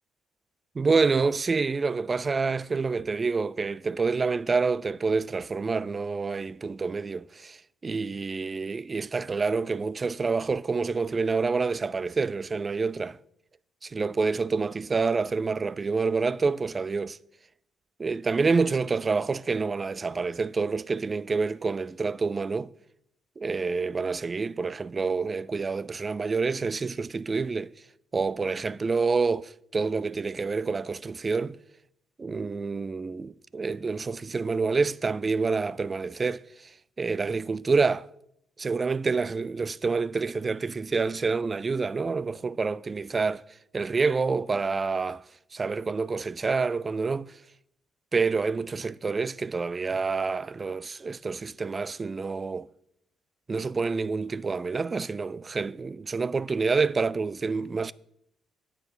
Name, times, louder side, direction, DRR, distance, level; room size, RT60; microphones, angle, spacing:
voice 1, 0.8-7.6 7.8-13.2 13.8-17.2 18.0-22.7 23.4-27.7 28.1-31.6 32.2-36.4 37.0-38.1 38.6-43.4 43.7-45.2 45.5-47.3 48.1-52.7 53.5-57.9, right 4 dB, 30° right, 0.3 m, -27 dB
9.2 x 7.4 x 5.6 m
cardioid pair, 90°, 0 cm